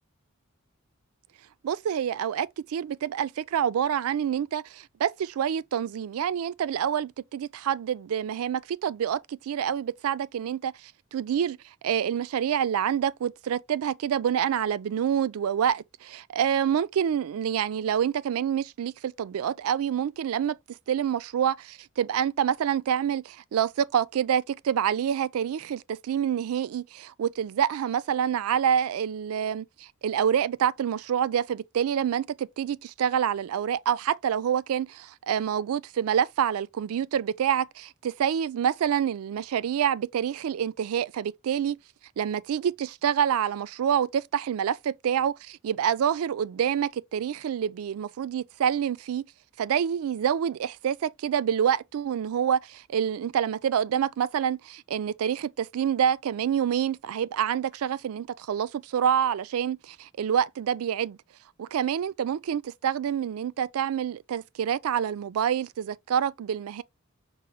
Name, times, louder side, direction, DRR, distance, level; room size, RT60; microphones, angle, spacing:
voice 1, 1.6-10.7 11.1-11.6 11.8-20.6 20.9-41.8 42.2-49.2 49.6-61.2 61.6-66.8, right 8 dB, 80° right, 0.3 m, -27 dB
5.4 x 2.0 x 3.9 m
head